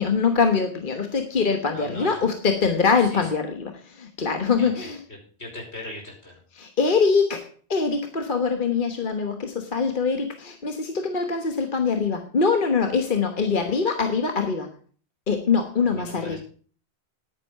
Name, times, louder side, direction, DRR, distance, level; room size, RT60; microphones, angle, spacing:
voice 1, 0.0-5.0 6.5-14.7 15.3-16.4, left 5 dB, 50° left, 6 dB, 1.4 m, -23 dB
voice 2, 1.7-2.1 3.1-3.3 4.6-4.7 5.4-6.4 15.8-16.4, left 1 dB, 80° left, -1 dB, 5.3 m, -38 dB
10.5 x 9.5 x 5.6 m, 0.42 s
omnidirectional pair, 1.1 m